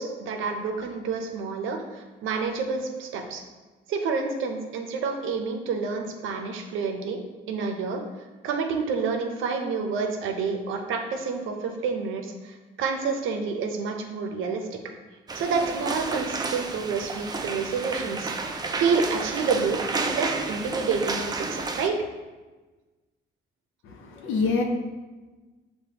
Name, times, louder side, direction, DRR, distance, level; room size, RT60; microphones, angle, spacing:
voice 1, 0.0-3.4 3.9-7.2 7.5-8.0 8.4-14.8 15.3-22.0, right 5 dB, 85° right, 4 dB, 0.6 m, -29 dB
sound 1, 15.3-21.9, right 3 dB, 20° right, 0.4 m, -31 dB
voice 2, 23.8-24.6, left 4 dB, 85° left, 2 dB, 0.7 m, -26 dB
6.7 x 2.2 x 2.8 m, 1.2 s
cardioid pair, 90°, 20 cm